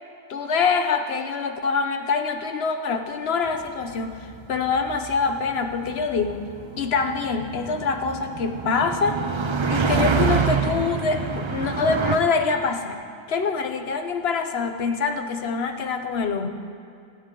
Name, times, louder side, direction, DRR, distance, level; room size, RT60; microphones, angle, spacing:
voice 1, 0.3-4.2 4.5-6.5 6.8-9.2 9.7-13.0 13.3-16.5, left 5 dB, 80° left, 6 dB, 1.1 m, -25 dB
sound 1, 3.7-12.2, right 5 dB, 35° right, 0.6 m, -27 dB
22.0 x 8.8 x 3.8 m, 2.5 s
omnidirectional pair, 1.0 m